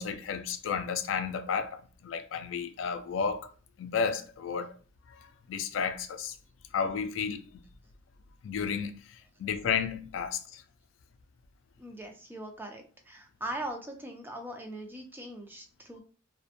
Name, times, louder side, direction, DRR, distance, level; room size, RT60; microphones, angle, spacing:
voice 1, 0.0-3.5 3.8-4.7 5.5-6.3 6.7-7.6 8.4-9.0 9.4-10.6, left 6 dB, 70° left, 0.3 m, -32 dB
voice 2, 11.8-16.0, right 1 dB, 10° right, 0.4 m, -40 dB
2.7 x 2.1 x 2.4 m
head